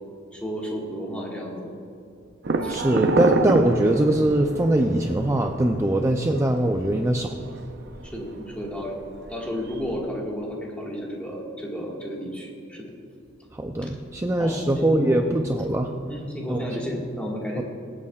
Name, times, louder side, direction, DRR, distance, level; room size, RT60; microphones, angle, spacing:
voice 1, 0.3-1.7 2.6-2.8 6.1-6.2 8.0-9.0 9.3-12.8 13.8-13.9 14.4-15.2 16.1-17.6, equal, 5° left, -3 dB, 1.7 m, -32 dB
sound 1, 2.4-10.0, right 2 dB, 60° right, 0.7 m, -29 dB
voice 2, 2.7-7.4 13.5-15.9 16.5-16.7 17.6-17.7, right 1 dB, 15° right, 3 dB, 0.4 m, -22 dB
25.0 x 8.4 x 2.4 m, 2.6 s
head